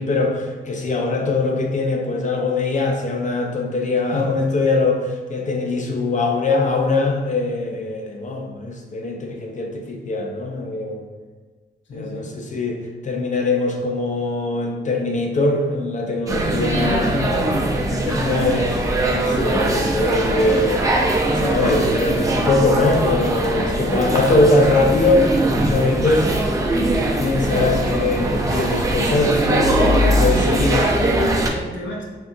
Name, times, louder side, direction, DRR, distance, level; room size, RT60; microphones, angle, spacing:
voice 1, 0.0-11.0 11.9-17.3 18.2-18.7 19.0-21.0 21.2-25.3 25.7-26.3 27.2-31.3, left 2 dB, 40° left, 2 dB, 0.5 m, -21 dB
voice 2, 11.9-12.3 16.5-18.3 31.0-31.2 31.5-32.0, left 1 dB, 80° left, -1 dB, 0.7 m, -31 dB
sound 1, 16.3-31.5, right 1 dB, 15° right, 0.4 m, -21 dB
3.5 x 2.7 x 2.6 m, 1.4 s
wide cardioid pair, 140°, 19 cm